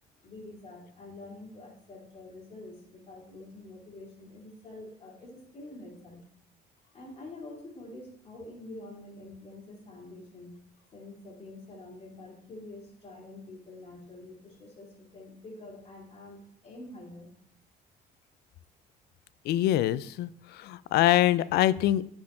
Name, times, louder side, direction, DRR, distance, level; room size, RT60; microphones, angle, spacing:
voice 1, 0.2-6.2 6.9-10.5 10.9-17.3, left 2 dB, 35° left, -1 dB, 2.7 m, -46 dB
voice 2, 19.5-20.3 20.6-22.1, left 14 dB, 70° left, 18 dB, 0.4 m, -24 dB
9.4 x 4.5 x 4.3 m, 0.67 s
cardioid pair, 110°, 17 cm